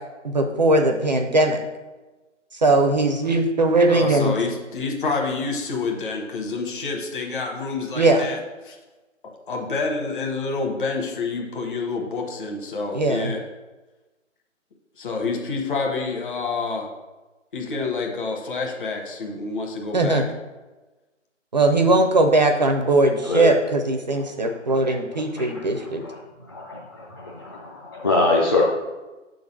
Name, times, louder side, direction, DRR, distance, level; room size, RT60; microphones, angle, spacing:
voice 1, 0.3-1.6 2.5-4.3 8.0-8.2 12.9-13.3 19.9-20.2 21.5-26.0, right 2 dB, 35° right, 5 dB, 0.6 m, -19 dB
voice 2, 3.9-8.4 8.6-8.8 9.5-13.4 15.0-16.9 17.5-20.2, left 4 dB, 40° left, 1 dB, 1.4 m, -28 dB
voice 3, 25.1-26.2 26.5-28.6, left 3 dB, 20° left, -5 dB, 0.6 m, -24 dB
6.7 x 3.9 x 6.5 m, 1.2 s
figure-of-eight pair, 145°, 37 cm